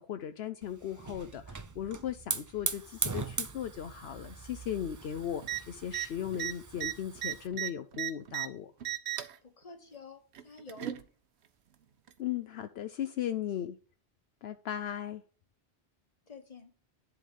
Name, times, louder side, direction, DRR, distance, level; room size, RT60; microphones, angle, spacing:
voice 1, 0.0-8.7 12.2-13.8 14.4-15.2, left 10 dB, 75° left, 0.9 m, -37 dB
Hiss / Fire, 0.6-7.5, right 4 dB, 30° right, 0.3 m, -40 dB
sound 1, 5.4-5.6 5.9-6.1 6.3-8.5 8.8-9.4 10.3-11.0 12.1-12.2, right 12 dB, 85° right, 1.0 m, -35 dB
voice 2, 9.4-11.0 16.3-16.7, left 3 dB, 35° left, 1.4 m, -49 dB
10.5 x 3.6 x 6.3 m
omnidirectional pair, 1.1 m